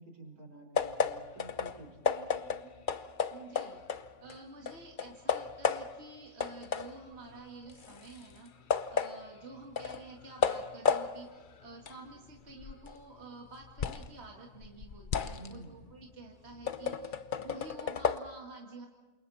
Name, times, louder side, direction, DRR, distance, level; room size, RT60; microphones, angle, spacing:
voice 1, 0.0-2.7 15.4-15.8, right 2 dB, 75° right, 2 dB, 5.0 m, -51 dB
sound 1, 0.8-4.4 4.7-6.1 6.4-14.1 14.5-18.2, left 6 dB, 45° left, 0.7 m, -34 dB
voice 2, 3.3-8.5 8.9-11.3 11.6-18.9, right 3 dB, 45° right, -1 dB, 2.4 m, -50 dB
28.5 x 27.5 x 4.2 m, 1.3 s
omnidirectional pair, 1.6 m